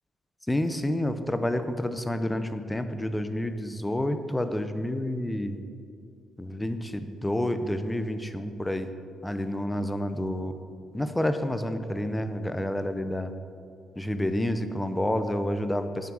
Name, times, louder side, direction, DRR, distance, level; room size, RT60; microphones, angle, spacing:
voice 1, 0.5-5.6 6.4-8.9 9.2-10.5 10.9-13.3 14.0-16.1, left 1 dB, 10° left, 9 dB, 0.6 m, -29 dB
9.0 x 6.0 x 6.1 m, 2.3 s
cardioid pair, 90°, 0 cm